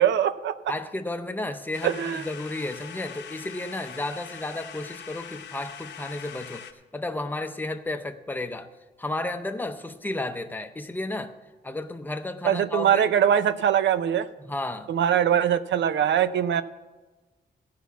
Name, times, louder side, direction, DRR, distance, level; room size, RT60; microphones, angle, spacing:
voice 1, 0.0-0.7 1.8-2.2 12.4-14.3 14.9-16.6, right 9 dB, 85° right, 13 dB, 0.6 m, -22 dB
voice 2, 0.7-6.7 6.9-8.7 9.0-11.4 11.6-13.1 14.4-14.9, left 2 dB, 10° left, 8 dB, 0.6 m, -32 dB
sound 1, 1.7-6.7, left 8 dB, 75° left, 0.9 m, -42 dB
16.0 x 5.7 x 7.3 m, 1.2 s
wide cardioid pair, 175°, 18 cm